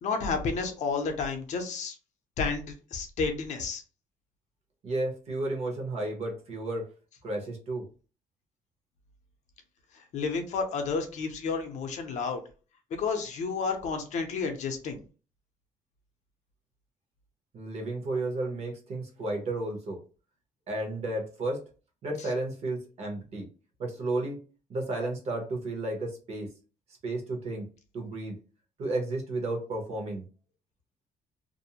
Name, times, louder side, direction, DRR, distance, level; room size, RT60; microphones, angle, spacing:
voice 1, 0.0-2.0 2.4-3.8 9.9-12.4 12.9-15.0 22.2-22.3, left 4 dB, 55° left, 5 dB, 0.6 m, -31 dB
voice 2, 4.8-6.8 7.2-7.8 17.5-20.0 20.7-21.6 22.0-23.5 23.8-24.4 24.7-26.5 27.0-27.7 27.9-28.4 28.8-30.2, right 2 dB, 45° right, 1 dB, 0.9 m, -32 dB
2.5 x 2.0 x 2.8 m, 0.35 s
cardioid pair, 160°, 15 cm